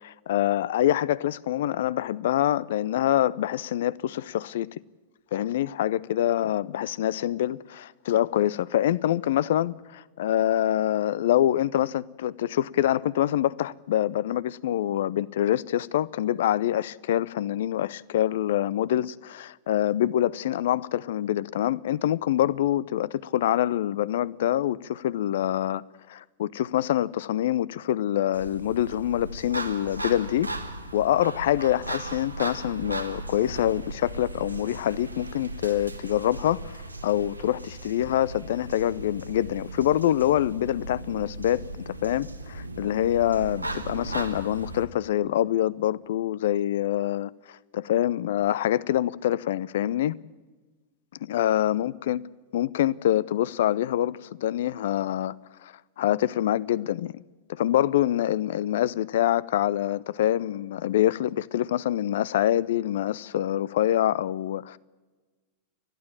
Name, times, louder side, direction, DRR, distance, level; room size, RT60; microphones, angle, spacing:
voice 1, 0.0-4.7 5.3-25.8 26.1-30.5 30.9-50.2 51.2-52.2 52.5-55.3 55.6-57.2 57.5-64.8, left 12 dB, 60° left, 0.6 m, -25 dB
sound 1, 28.3-44.9, right 2 dB, 85° right, 1.6 m, -37 dB
30.0 x 11.5 x 8.6 m
figure-of-eight pair, 90°, 0 cm